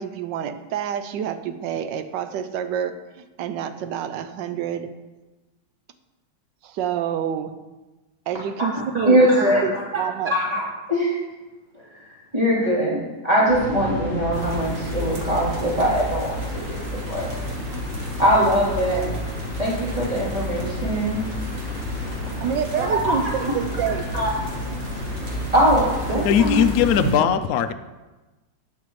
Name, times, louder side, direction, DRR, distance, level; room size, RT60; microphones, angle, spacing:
voice 1, 0.0-4.9 6.6-7.5 8.3-10.3 22.4-24.1 26.1-26.3, right 8 dB, 75° right, 10 dB, 1.3 m, -28 dB
voice 2, 8.9-9.8 10.3-10.6 10.9-11.2 12.3-16.8 17.1-17.3 18.2-19.1 19.6-21.2 22.8-23.2 24.1-24.3 25.5-26.7, equal, 20° right, -7 dB, 3.5 m, -21 dB
sound 1, 13.5-27.1, left 1 dB, 45° left, 4.0 m, -30 dB
sound 2, 14.3-27.1, right 3 dB, 45° right, 1.8 m, -38 dB
voice 3, 26.2-27.7, left 9 dB, 75° left, 10 dB, 0.8 m, -19 dB
17.5 x 5.9 x 3.2 m, 1.2 s
omnidirectional pair, 2.1 m